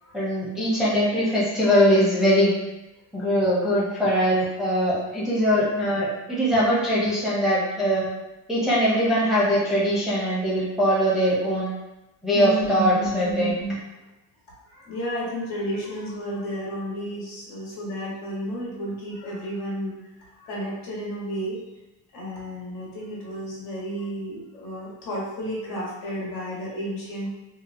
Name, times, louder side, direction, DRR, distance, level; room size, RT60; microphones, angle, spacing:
voice 1, 0.1-2.5 3.1-8.0 8.5-11.7 12.2-13.6, equal, ahead, -8 dB, 0.5 m, -22 dB
voice 2, 12.3-13.7 14.6-21.6 22.1-27.4, equal, 75° left, -5 dB, 1.1 m, -32 dB
2.7 x 2.2 x 2.5 m, 0.98 s
cardioid pair, 135°, 38 cm